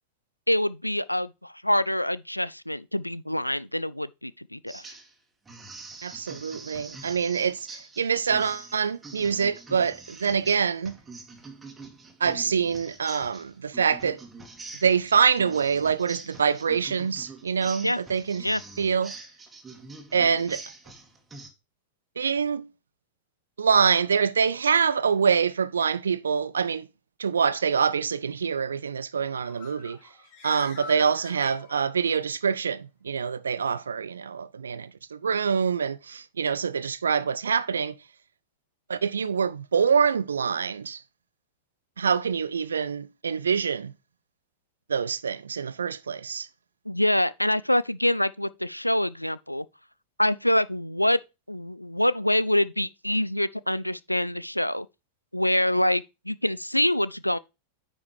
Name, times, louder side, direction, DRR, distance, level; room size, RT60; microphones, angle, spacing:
voice 1, 0.5-4.8 17.8-18.0 18.4-18.6 46.9-49.6 50.2-51.2 51.5-54.9 55.3-57.4, left 1 dB, 90° left, 0.3 m, -25 dB
sound 1, 4.7-5.1 5.5-21.5, right 3 dB, 15° right, 2.1 m, -45 dB
voice 2, 6.0-10.9 12.2-14.2 14.8-18.5 18.8-19.1 20.1-20.6 22.2-22.7 23.6-26.9 27.2-30.0 30.4-37.9 38.9-41.0 42.0-43.9 44.9-46.5, right 6 dB, 70° right, 0.5 m, -25 dB
Bird, 29.1-32.2, left 2 dB, 50° left, 4.1 m, -45 dB
9.7 x 5.1 x 3.2 m
figure-of-eight pair, 90°, 0 cm